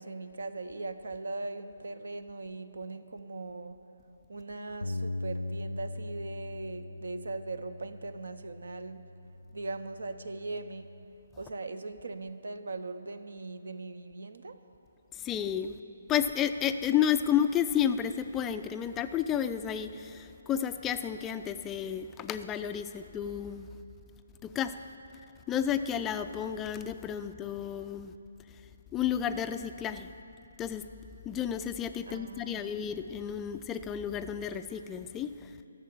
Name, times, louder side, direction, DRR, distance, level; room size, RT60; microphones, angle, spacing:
voice 1, 0.0-3.8 4.3-9.0 9.5-10.9 11.4-14.6 32.1-32.7, right 3 dB, 65° right, 11 dB, 0.6 m, -40 dB
Bass guitar, 4.8-11.1, left 2 dB, 90° left, 0.4 m, -40 dB
voice 2, 15.1-15.8 16.1-23.7 24.4-24.8 25.5-28.1 28.9-30.1 30.6-30.9 31.3-35.5, left 9 dB, 15° left, 10 dB, 0.3 m, -31 dB
12.5 x 6.8 x 7.6 m, 2.8 s
figure-of-eight pair, 140°, 0 cm